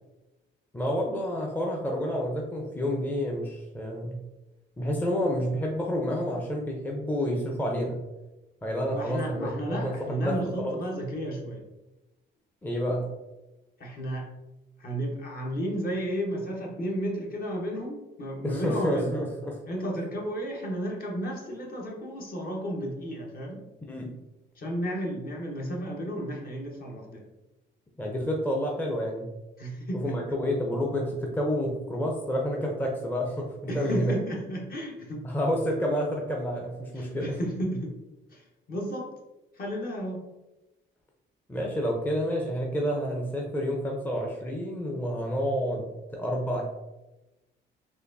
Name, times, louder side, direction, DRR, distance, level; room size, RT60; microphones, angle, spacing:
voice 1, 0.7-4.2 4.8-8.0 8.6-10.8 12.6-13.1 18.4-19.5 23.9-24.1 28.0-29.3 29.9-33.5 33.7-34.1 35.2-37.4 41.5-46.7, equal, 10° left, -1 dB, 0.6 m, -29 dB
voice 2, 8.9-11.6 13.8-14.3 14.8-19.1 19.7-23.6 24.5-27.2 29.6-30.2 33.7-35.3 37.0-37.9 38.3-39.1 39.5-40.3, equal, 50° left, -1 dB, 1.1 m, -33 dB
4.3 x 2.5 x 2.6 m, 1.0 s
cardioid pair, 90°, 20 cm